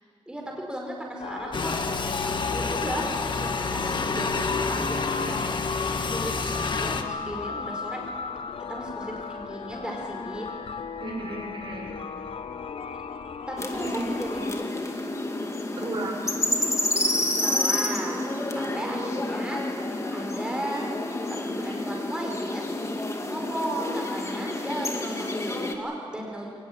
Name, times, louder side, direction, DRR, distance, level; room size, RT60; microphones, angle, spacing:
voice 1, 0.3-5.4 6.0-8.0 8.7-10.5 12.9-13.0 13.5-14.7 17.4-18.2 18.5-20.9 21.3-26.5, right 1 dB, 10° right, -1 dB, 5.0 m, -35 dB
sound 1, 1.2-14.6, left 5 dB, 70° left, 1.0 m, -36 dB
sound 2, 1.5-7.0, left 4 dB, 55° left, 1.6 m, -29 dB
voice 2, 11.0-11.9 13.8-13.9 15.7-16.2 18.1-18.9, right 2 dB, 55° right, 0 dB, 6.0 m, -35 dB
sound 3, 13.6-25.7, left 1 dB, 30° left, 2.3 m, -29 dB
22.5 x 19.5 x 8.9 m, 2.4 s
wide cardioid pair, 100°, 10 cm